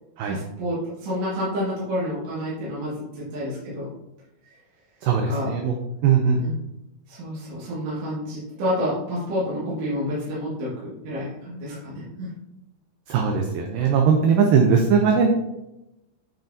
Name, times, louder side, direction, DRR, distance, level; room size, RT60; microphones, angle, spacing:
voice 1, 0.2-3.9 5.3-5.5 6.4-6.6 7.1-12.3, equal, 60° right, -8 dB, 3.2 m, -29 dB
voice 2, 5.0-5.7 6.0-6.4 13.1-15.3, right 6 dB, 80° right, 3 dB, 2.0 m, -19 dB
9.4 x 4.4 x 2.7 m, 0.91 s
omnidirectional pair, 4.4 m